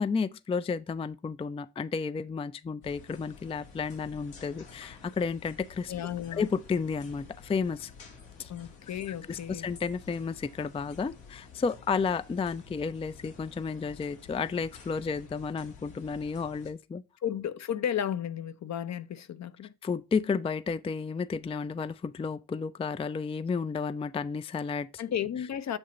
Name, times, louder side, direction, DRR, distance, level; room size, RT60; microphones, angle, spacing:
voice 1, 0.0-5.9 6.3-7.9 8.4-8.5 9.3-17.0 19.8-25.0, left 5 dB, 15° left, 0.4 m, -32 dB
sound 1, 2.8-16.7, left 5 dB, 80° left, 1.6 m, -51 dB
voice 2, 5.9-6.4 8.5-9.7 17.2-19.7 25.0-25.8, left 9 dB, 50° left, 0.7 m, -33 dB
8.0 x 2.8 x 5.1 m
hypercardioid pair, 40°, 35 cm